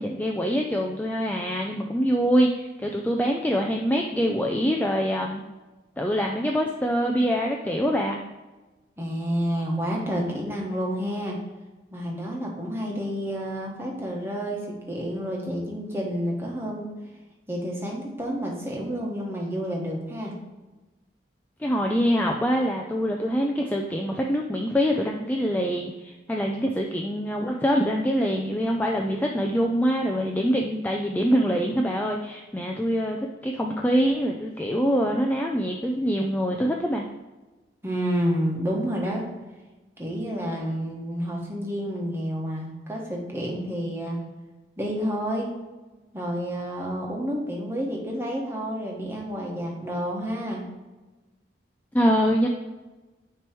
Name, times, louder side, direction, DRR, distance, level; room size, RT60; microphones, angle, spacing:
voice 1, 0.0-5.4 6.0-8.2 21.6-37.1 51.9-52.5, equal, 10° left, 0 dB, 0.3 m, -24 dB
voice 2, 9.0-11.4 11.9-16.9 17.5-20.3 37.8-39.2 40.0-44.2 44.8-45.5 46.1-50.6, equal, 15° right, -2 dB, 1.3 m, -29 dB
9.2 x 3.1 x 4.5 m, 1.2 s
head